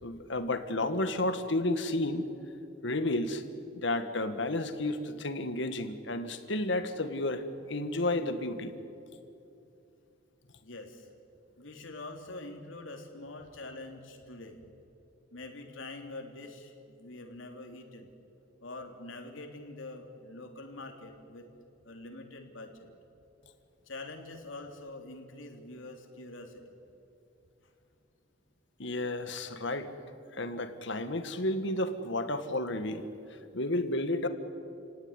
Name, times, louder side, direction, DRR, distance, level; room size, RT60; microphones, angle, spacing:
voice 1, 0.0-2.2 2.8-3.4 3.7-8.8 28.8-29.9 30.3-33.1 33.5-34.3, left 2 dB, 65° left, 9 dB, 1.8 m, -32 dB
voice 2, 10.6-11.1 11.6-14.6 15.3-18.1 18.6-21.5 21.8-22.9 23.8-26.8, left 2 dB, 85° left, 3 dB, 3.4 m, -45 dB
29.5 x 18.0 x 10.0 m, 2.7 s
head